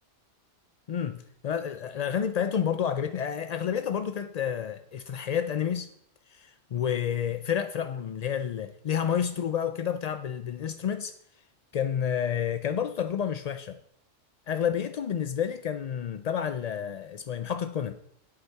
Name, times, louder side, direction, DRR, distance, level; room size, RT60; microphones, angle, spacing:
voice 1, 0.9-5.9 6.3-11.1 11.7-13.8 14.5-18.0, left 8 dB, 65° left, 0.4 m, -30 dB
10.5 x 8.3 x 4.7 m
omnidirectional pair, 1.2 m